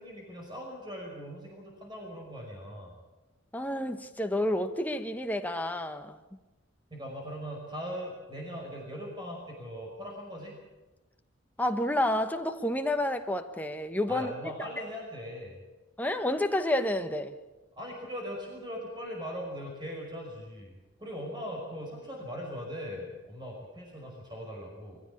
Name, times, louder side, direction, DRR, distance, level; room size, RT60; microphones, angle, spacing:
voice 1, 0.0-2.9 6.9-10.6 14.1-15.6 17.8-20.7 21.0-25.0, equal, 25° right, 5.5 m, -40 dB
voice 2, 3.5-6.4 11.6-14.5 16.0-17.3, left 1 dB, 10° left, 1.2 m, -30 dB
23.0 x 15.5 x 8.6 m
head